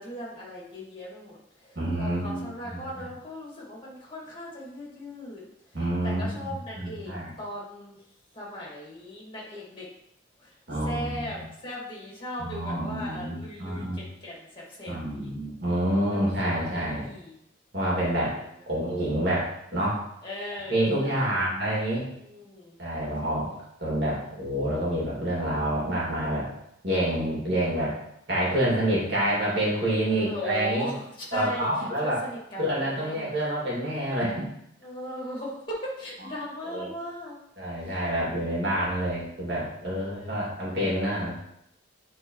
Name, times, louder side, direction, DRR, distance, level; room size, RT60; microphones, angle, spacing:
voice 1, 0.0-8.0 8.3-9.9 10.4-10.5 10.8-15.3 16.1-17.3 18.6-18.7 20.2-21.5 22.3-22.8 30.0-33.4 34.8-37.4 37.7-38.0 40.0-40.5, equal, 25° left, -4 dB, 2.2 m, -38 dB
voice 2, 1.8-2.8 5.7-7.3 10.7-11.4 12.4-14.0 14.9-17.1 17.7-18.3 18.7-20.0 20.7-22.1 22.8-23.5 23.8-26.5 26.8-27.9 28.3-30.9 31.3-32.2 32.6-34.5 36.7-36.9 37.6-41.3, right 1 dB, 60° right, -6 dB, 2.5 m, -28 dB
8.1 x 4.1 x 3.2 m, 0.78 s
head